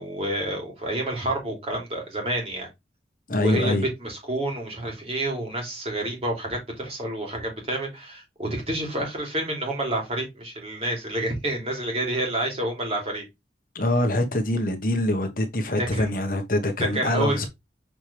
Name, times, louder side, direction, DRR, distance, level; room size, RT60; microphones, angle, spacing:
voice 1, 0.0-2.7 3.4-13.2 15.8-16.1 16.8-17.5, right 1 dB, 35° right, 2.9 m, -29 dB
voice 2, 3.3-3.8 13.7-17.5, left 1 dB, 50° left, 1.3 m, -24 dB
7.1 x 4.5 x 3.4 m
head